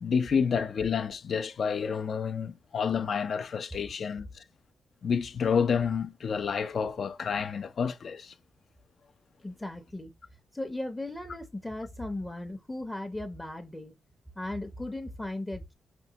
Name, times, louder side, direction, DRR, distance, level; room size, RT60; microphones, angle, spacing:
voice 1, 0.0-4.3 5.0-8.3, left 6 dB, 60° left, 0.4 m, -29 dB
voice 2, 9.4-10.1 10.5-13.9 14.4-15.7, left 1 dB, 10° left, 0.6 m, -37 dB
5.1 x 2.1 x 2.7 m
cardioid pair, 95°, 0 cm